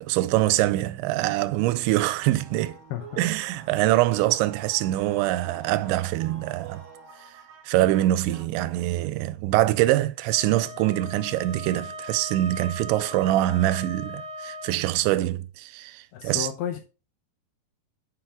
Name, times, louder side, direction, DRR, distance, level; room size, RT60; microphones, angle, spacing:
voice 1, 0.0-2.8 3.2-6.8 7.7-16.5, right 15 dB, 90° right, 2.9 m, -24 dB
sound 1, 2.0-8.5, right 5 dB, 70° right, 3.4 m, -47 dB
voice 2, 2.9-3.3 16.1-16.8, left 9 dB, 75° left, 2.4 m, -32 dB
Wind instrument woodwind instrument, 10.3-14.8, equal, 50° left, 2.8 m, -39 dB
7.0 x 5.8 x 3.6 m
omnidirectional pair, 5.1 m